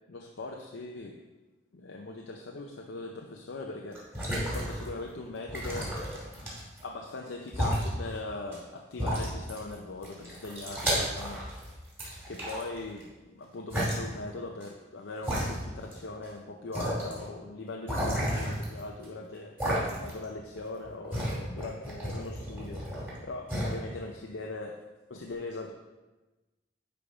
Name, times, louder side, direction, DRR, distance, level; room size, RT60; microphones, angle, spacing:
voice 1, 0.1-1.2 1.7-4.2 4.5-6.0 6.3-6.5 6.8-11.5 12.3-19.6 20.0-22.9 23.2-25.7, left 2 dB, 85° left, 1 dB, 0.6 m, -40 dB
sound 1, 3.9-5.0 5.5-6.8 7.5-7.9 8.5-8.6 9.0-9.7 10.0-11.6 12.0-13.0 13.7-13.9 14.6-14.7 15.2-16.0 16.2-16.3 16.7-17.1 17.9-19.0 19.6-20.2 20.6-23.2 23.5-23.7, equal, 10° right, 2.4 m, -32 dB
10.0 x 3.4 x 4.9 m, 1.1 s
head